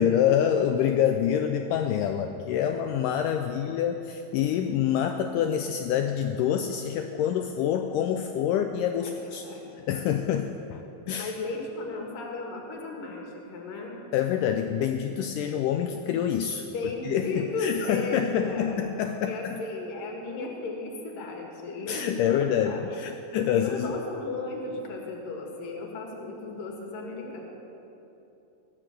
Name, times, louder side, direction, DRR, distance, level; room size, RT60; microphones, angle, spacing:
voice 1, 0.0-9.4 9.9-10.8 11.1-11.3 14.1-16.7 17.0-19.6 21.9-23.9, left 9 dB, 90° left, 6 dB, 1.8 m, -26 dB
voice 2, 9.0-9.9 11.2-14.0 16.6-22.8 23.5-27.4, left 3 dB, 65° left, 0 dB, 3.4 m, -35 dB
19.0 x 6.6 x 7.7 m, 2.9 s
omnidirectional pair, 4.3 m